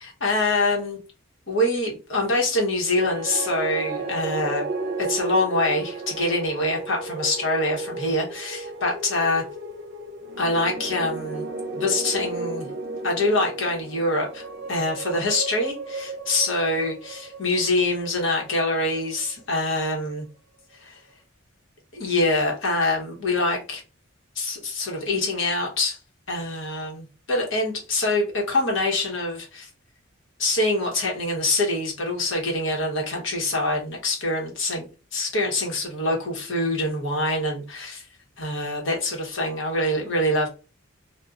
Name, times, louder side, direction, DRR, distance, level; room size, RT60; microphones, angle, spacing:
voice 1, 0.0-1.0 1.5-4.6 5.0-9.4 10.4-11.5 11.7-12.7 13.0-20.2 20.8-21.0 21.9-23.8 24.4-26.0 26.3-29.7 30.4-34.9 35.1-38.1 38.4-40.5, left 2 dB, 65° left, -1 dB, 1.2 m, -25 dB
sound 1, 2.8-19.1, right 3 dB, 55° right, 0.6 m, -34 dB
2.7 x 2.3 x 3.6 m, 0.33 s
head